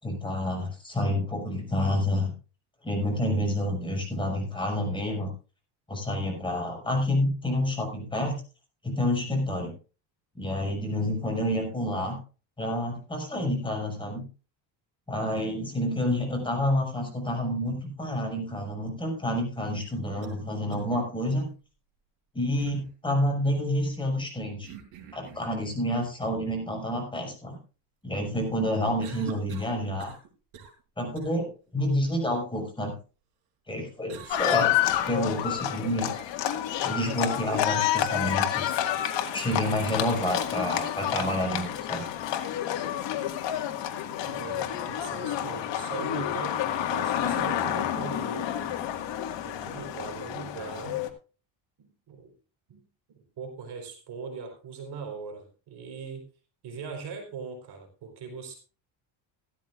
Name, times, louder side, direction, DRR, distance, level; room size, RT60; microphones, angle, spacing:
voice 1, 0.0-2.3 2.8-5.3 5.9-8.4 8.8-9.7 10.4-12.2 12.6-14.2 15.1-21.5 22.3-24.7 25.1-27.6 28.0-30.1 31.0-32.9 33.7-34.7 35.0-36.3 36.8-38.8 39.3-42.1, left 1 dB, 10° left, 1 dB, 5.9 m, -29 dB
sound 1, 19.9-20.4 20.7-20.8 22.6-22.9 24.6-25.5 29.0-30.3 30.5-30.8 31.2-31.3 34.1-34.9, right 9 dB, 70° right, 4.2 m, -45 dB
Livestock farm animals working animals, 34.3-51.1, left 11 dB, 60° left, 2.0 m, -29 dB
voice 2, 44.3-48.7 49.4-51.0 51.8-52.3 52.7-52.8 53.1-56.2 56.6-58.5, right 5 dB, 55° right, 3 dB, 4.2 m, -40 dB
16.0 x 13.5 x 2.5 m, 0.33 s
cardioid pair, 125°, 48 cm